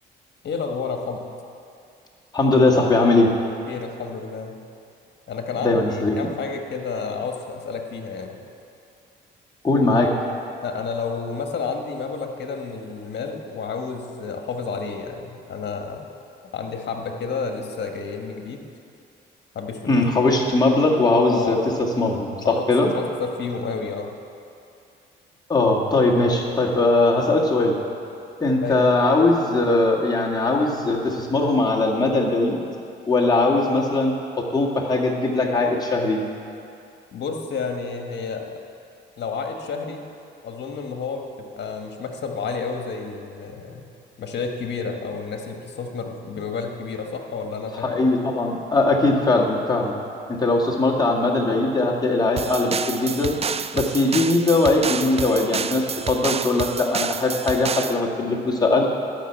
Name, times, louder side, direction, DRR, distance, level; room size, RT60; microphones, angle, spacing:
voice 1, 0.4-1.2 3.7-4.6 5.3-8.4 10.6-16.1 16.5-18.6 19.5-20.0 21.3-21.6 22.4-22.7 22.9-24.2 28.6-28.8 37.1-38.5 39.2-40.0 40.4-41.2 41.6-43.9 44.2-48.1, left 5 dB, 60° left, 3 dB, 1.4 m, -30 dB
voice 2, 2.3-3.3 5.6-6.2 9.6-10.1 19.9-21.6 22.0-22.9 25.5-27.8 28.4-32.6 33.1-36.2 47.8-49.9 50.3-53.4 53.7-58.8, left 2 dB, 20° left, -2 dB, 1.8 m, -20 dB
sound 1, 52.4-58.0, right 6 dB, 30° right, 0.4 m, -29 dB
12.5 x 6.1 x 8.1 m, 2.6 s
cardioid pair, 90°, 20 cm